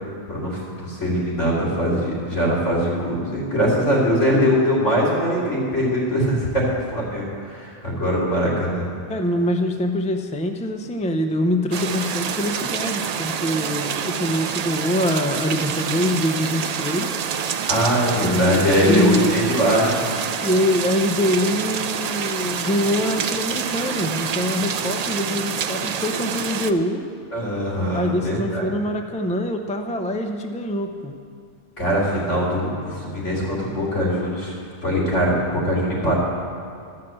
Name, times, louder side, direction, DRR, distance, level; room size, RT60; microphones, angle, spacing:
voice 1, 0.3-8.9 17.7-20.0 27.3-28.7 31.8-34.5 34.8-36.1, equal, 75° left, -5 dB, 3.6 m, -21 dB
voice 2, 9.1-17.2 18.2-19.4 20.4-27.1 27.9-31.1 36.0-36.1, left 1 dB, 10° left, 5 dB, 0.4 m, -24 dB
sound 1, 11.7-26.7, right 7 dB, 75° right, 0.3 m, -27 dB
13.5 x 5.8 x 7.7 m, 2.4 s
omnidirectional pair, 1.3 m